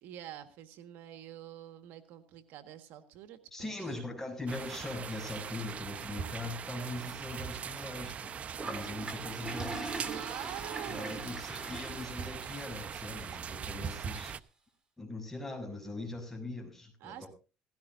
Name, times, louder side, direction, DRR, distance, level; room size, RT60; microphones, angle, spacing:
voice 1, 0.0-4.0 10.0-11.4 17.0-17.3, right 11 dB, 75° right, 9 dB, 1.7 m, -46 dB
voice 2, 3.5-8.3 8.6-9.9 10.9-14.3 15.0-17.3, left 2 dB, 10° left, 4 dB, 6.5 m, -41 dB
sound 1, 4.5-14.4, right 7 dB, 40° right, 0.8 m, -41 dB
Toilet flush, 8.6-13.6, right 3 dB, 25° right, 3.9 m, -42 dB
17.5 x 16.0 x 2.7 m, 0.33 s
cardioid pair, 105°, 3 cm